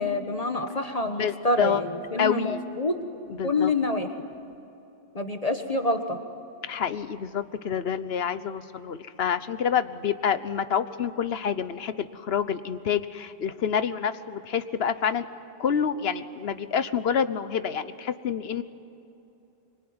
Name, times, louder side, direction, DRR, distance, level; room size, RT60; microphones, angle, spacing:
voice 1, 0.0-2.9 3.4-4.1 5.1-6.2, left 2 dB, 35° left, 6 dB, 1.5 m, -27 dB
voice 2, 1.2-1.8 2.2-2.6 3.4-3.7 6.6-15.3 15.6-18.6, left 7 dB, 75° left, 12 dB, 1.2 m, -28 dB
25.5 x 24.0 x 9.7 m, 2.8 s
omnidirectional pair, 1.1 m